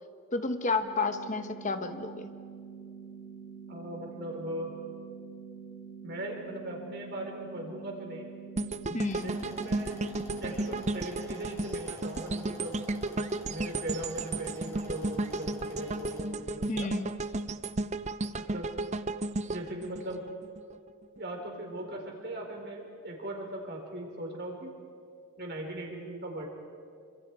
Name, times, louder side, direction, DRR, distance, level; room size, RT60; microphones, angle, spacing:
voice 1, 0.3-2.3 8.9-9.3 16.7-17.1, left 3 dB, 35° left, 8 dB, 1.0 m, -31 dB
sound 1, 0.8-10.8, right 6 dB, 75° left, 6.1 m, -46 dB
voice 2, 3.7-4.7 6.0-8.3 9.2-10.0 10.4-12.8 13.5-16.9 18.5-18.7 19.5-20.2 21.2-24.7 25.4-26.5, right 1 dB, 50° right, 1 dB, 4.5 m, -39 dB
sound 2, 8.6-20.7 21.2-21.3, right 2 dB, 35° right, 0.6 m, -34 dB
sound 3, 9.0-16.2, left 1 dB, 15° left, 4.2 m, -50 dB
28.0 x 26.5 x 4.8 m, 2.4 s
head